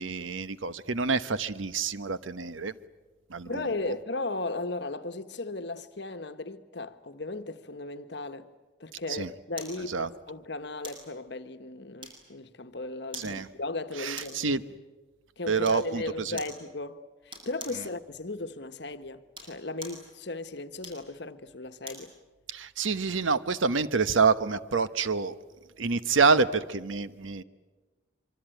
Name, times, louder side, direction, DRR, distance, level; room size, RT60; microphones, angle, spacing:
voice 1, 0.0-2.7 3.3-3.6 9.1-9.3 9.9-10.1 13.2-13.5 14.0-14.6 15.5-16.4 22.5-25.3 25.8-27.4, right 4 dB, 80° right, 1.0 m, -27 dB
voice 2, 3.4-8.5 8.8-14.4 15.4-22.1, left 2 dB, 60° left, 1.3 m, -36 dB
sound 1, 9.6-9.8 10.8-11.1 12.0-12.4 13.1-13.4 14.1-14.5 15.6-15.9 16.4-16.6 17.3-17.8 19.2-20.1 20.8-22.1 22.6-22.7, right 1 dB, 25° right, 6.9 m, -44 dB
25.0 x 25.0 x 9.1 m
head